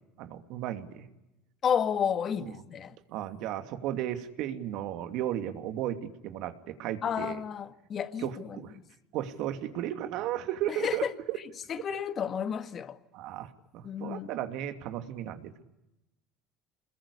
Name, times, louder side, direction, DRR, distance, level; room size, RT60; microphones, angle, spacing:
voice 1, 0.2-1.1 2.4-2.5 3.1-7.4 8.2-8.7 9.1-11.4 13.1-15.6, right 12 dB, 65° right, 2.7 m, -35 dB
voice 2, 1.6-3.0 7.0-8.6 10.7-11.1 11.7-13.0 13.8-14.3, left 8 dB, 45° left, 1.7 m, -31 dB
28.0 x 21.0 x 8.5 m
hypercardioid pair, 80°, 0 cm